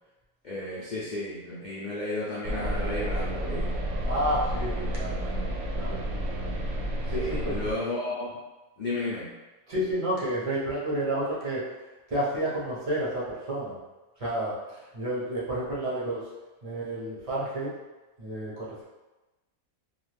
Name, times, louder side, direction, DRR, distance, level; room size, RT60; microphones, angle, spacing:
voice 1, 0.4-3.7 7.1-8.4 8.8-9.3, left 2 dB, 70° left, -8 dB, 0.4 m, -33 dB
sound 1, 2.4-7.7, right 1 dB, 70° right, 0.8 m, -30 dB
voice 2, 4.0-5.4 5.7-6.1 7.1-7.5 9.7-11.6 12.1-13.8 14.2-16.3 16.6-17.8 18.2-18.8, right 1 dB, 30° right, -7 dB, 0.6 m, -30 dB
2.6 x 2.4 x 3.2 m, 1.1 s
omnidirectional pair, 1.6 m